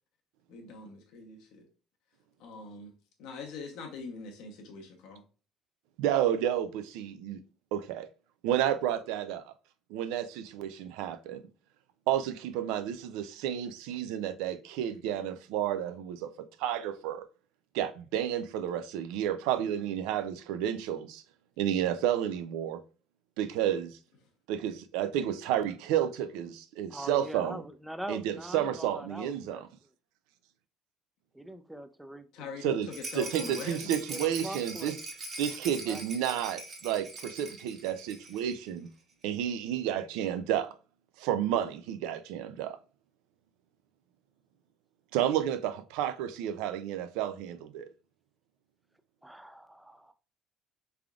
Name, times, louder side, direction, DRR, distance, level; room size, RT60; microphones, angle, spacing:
voice 1, 0.5-1.4 2.4-2.9 3.2-5.2 32.3-33.9, left 4 dB, 80° left, 0.9 m, -42 dB
voice 2, 6.0-7.4 7.7-8.1 8.4-9.5 9.9-11.4 12.1-16.3 16.6-17.2 17.7-21.2 21.6-22.8 23.4-24.0 24.5-27.6 28.1-29.7 32.6-32.9 33.1-34.9 35.4-38.9 39.2-40.7 41.2-42.8 45.1-47.9, right 10 dB, 85° right, 0.4 m, -31 dB
voice 3, 26.9-29.6 31.3-32.5 34.1-35.0 35.9-36.3 49.2-50.1, right 1 dB, 5° right, 0.4 m, -42 dB
Rattle, 32.9-38.6 38.9-39.0 39.2-39.3, right 3 dB, 50° right, 1.3 m, -42 dB
3.7 x 3.4 x 2.3 m
cardioid pair, 100°, 0 cm